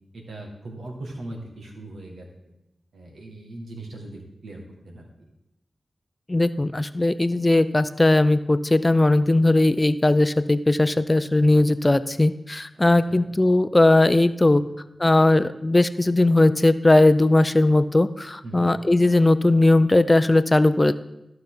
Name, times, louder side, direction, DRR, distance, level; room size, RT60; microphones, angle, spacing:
voice 1, 0.1-2.5 2.9-5.1 12.7-13.2 18.4-18.7, right 2 dB, 80° right, 0 dB, 1.9 m, -40 dB
voice 2, 6.3-14.6 15.0-21.0, left 2 dB, 25° left, 13 dB, 0.5 m, -18 dB
14.0 x 5.7 x 3.8 m, 0.90 s
cardioid pair, 45°, 0 cm